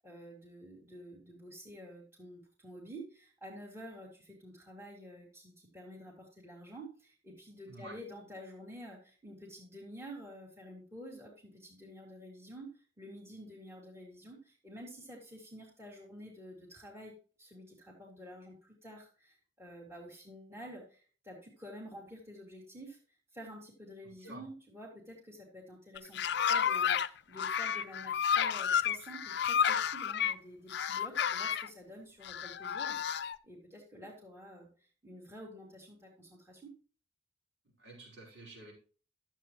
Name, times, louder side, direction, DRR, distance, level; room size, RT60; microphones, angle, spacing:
voice 1, 0.0-23.0 23.3-36.7, equal, 15° right, -4 dB, 2.2 m, -50 dB
voice 2, 7.7-8.0 24.0-24.5 37.8-38.7, right 2 dB, 80° right, -2 dB, 4.9 m, -50 dB
sound 1, 26.0-27.1 27.4-30.3 30.7-31.7 32.2-33.4, left 8 dB, 65° left, 0.5 m, -31 dB
12.0 x 7.5 x 3.0 m, 0.39 s
head